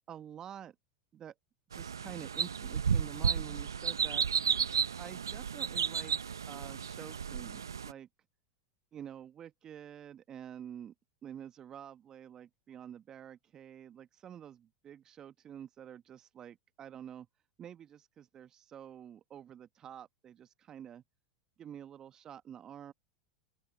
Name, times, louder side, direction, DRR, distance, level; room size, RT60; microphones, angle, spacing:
voice 1, 0.1-0.7 1.1-1.3 1.7-4.3 5.0-6.1 6.5-8.1 8.9-10.9 11.2-17.3 17.6-21.0 21.6-22.9, right 9 dB, 30° right, 1.4 m, -48 dB
sound 1, 1.7-7.9, right 7 dB, 80° right, 0.8 m, -33 dB
open air
hypercardioid pair, 90°, 2 cm